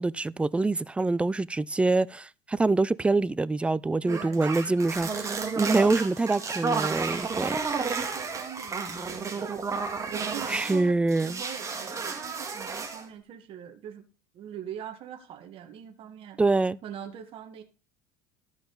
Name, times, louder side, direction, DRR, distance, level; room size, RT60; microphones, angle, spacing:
voice 1, 0.0-7.6 10.5-11.4 16.4-16.8, right 3 dB, 10° right, 0.3 m, -25 dB
voice 2, 4.0-4.9 5.6-6.6 7.8-9.7 10.1-14.0 14.3-16.4 16.8-17.6, right 9 dB, 55° right, 1.5 m, -42 dB
sound 1, 4.1-10.8 11.1-13.0, right 4 dB, 25° right, 1.7 m, -32 dB
13.0 x 4.9 x 3.9 m
supercardioid pair, 95°, 11 cm